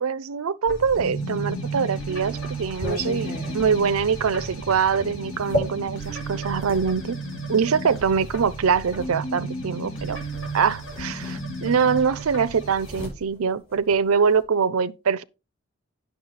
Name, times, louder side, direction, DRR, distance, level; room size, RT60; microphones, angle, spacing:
voice 1, 0.0-7.2 7.5-10.2 10.5-15.2, right 6 dB, 85° right, 0.5 m, -23 dB
sound 1, 0.7-13.1, right 2 dB, 70° left, 2.7 m, -33 dB
sound 2, 1.5-6.9 7.8-9.1 10.3-10.5 10.8-11.9 12.2-14.4, left 1 dB, 45° left, 5.5 m, -35 dB
9.4 x 6.6 x 4.1 m
head